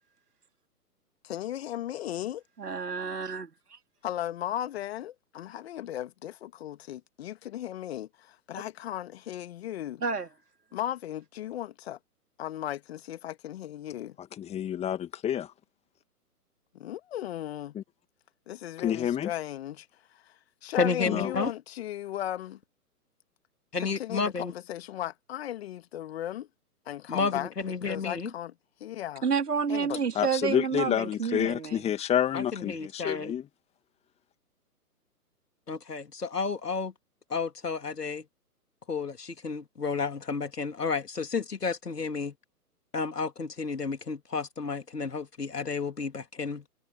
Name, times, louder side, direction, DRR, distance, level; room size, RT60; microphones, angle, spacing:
voice 1, 1.2-2.4 4.0-10.0 10.7-12.0 12.4-14.2 16.7-17.8 18.5-22.6 23.8-26.5 26.8-27.5 27.9-28.5 28.8-29.2 29.7-30.0, left 12 dB, 40° left, 1.8 m, -36 dB
voice 2, 2.6-3.8 10.0-10.3 29.2-31.8, right 6 dB, 75° right, 3.1 m, -30 dB
voice 3, 14.2-15.5 17.7-17.8 18.8-19.3 21.0-21.3 30.2-33.5, left 10 dB, 15° left, 2.1 m, -29 dB
voice 4, 20.8-21.5 23.7-24.5 27.1-28.3 32.3-33.3 35.7-36.9 37.3-38.2 38.9-42.3 42.9-46.6, left 4 dB, 80° left, 2.7 m, -31 dB
figure-of-eight pair, 125°, 47 cm